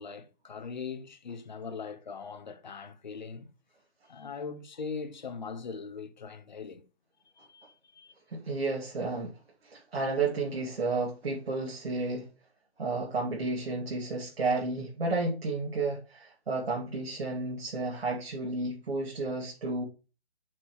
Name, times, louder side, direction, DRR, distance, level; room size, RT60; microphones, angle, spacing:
voice 1, 0.0-3.5 4.1-6.8 7.3-8.1, left 5 dB, 45° left, 1.1 m, -41 dB
voice 2, 8.3-9.4 9.6-12.3 12.8-19.8, right 3 dB, 75° right, 2.4 m, -32 dB
8.1 x 6.1 x 3.1 m
hypercardioid pair, 180°, 31 cm